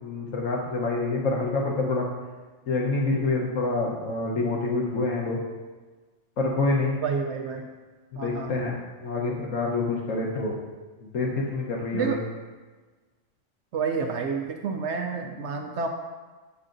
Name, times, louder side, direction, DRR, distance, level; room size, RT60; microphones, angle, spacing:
voice 1, 0.0-2.0 2.7-5.4 6.4-7.0 8.1-10.5 11.0-12.2, left 3 dB, 85° left, -2 dB, 1.3 m, -27 dB
voice 2, 7.0-7.7 8.2-8.6 11.9-12.2 13.7-15.9, right 5 dB, 70° right, 3 dB, 0.8 m, -29 dB
7.9 x 7.5 x 2.5 m, 1.3 s
omnidirectional pair, 1.3 m